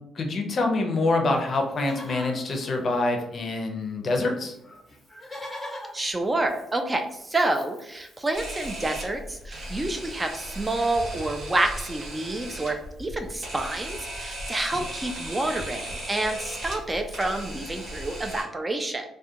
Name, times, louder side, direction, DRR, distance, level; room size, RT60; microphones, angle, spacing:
voice 1, 0.2-4.5, left 2 dB, 45° left, 3 dB, 0.5 m, -26 dB
Livestock farm animals working animals, 1.5-3.6 3.8-3.9 4.1-11.1 11.5-12.4 13.7-13.8 13.9-14.2 14.6-15.5 16.1-16.2, left 1 dB, 5° left, 1.0 m, -46 dB
voice 2, 5.9-19.0, right 2 dB, 20° right, 5 dB, 0.3 m, -28 dB
Camera, 8.3-18.4, right 1 dB, 65° right, 1.0 m, -37 dB
2.3 x 2.1 x 2.7 m, 0.81 s
cardioid pair, 90°, 0 cm